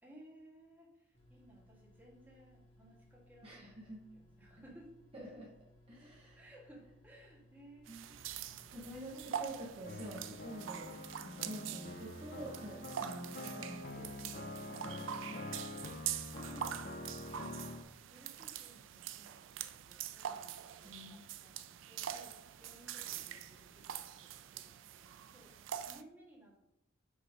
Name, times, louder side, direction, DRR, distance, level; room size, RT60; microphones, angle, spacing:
voice 1, 0.0-3.8 4.1-4.9 6.4-8.7 9.1-9.3 10.3-10.4 16.3-25.5 25.9-26.7, right 1 dB, 10° right, -4 dB, 1.7 m, -60 dB
sound 1, 1.1-10.4, left 1 dB, 80° left, 2.0 m, -64 dB
voice 2, 3.4-4.1 5.1-5.6 5.9-6.5 7.9-8.1 8.7-15.4 20.8-21.2, right 1 dB, 30° right, -5 dB, 1.2 m, -48 dB
sound 2, 7.9-26.0, right 9 dB, 75° right, 0.4 m, -45 dB
sound 3, 9.9-17.8, left 2 dB, 45° left, 0.6 m, -46 dB
6.6 x 3.2 x 5.0 m, 0.84 s
head